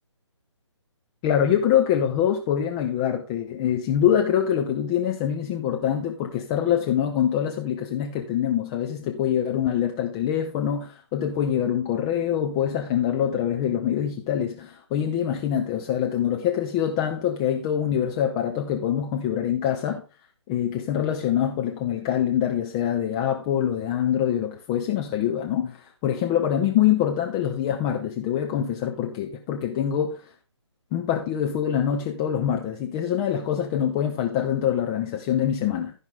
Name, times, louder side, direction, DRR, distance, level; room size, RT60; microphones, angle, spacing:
voice 1, 1.2-20.0 20.5-30.3 30.9-35.9, left 9 dB, 10° left, 0.4 m, -24 dB
14.5 x 5.5 x 3.7 m
figure-of-eight pair, 140°, 16 cm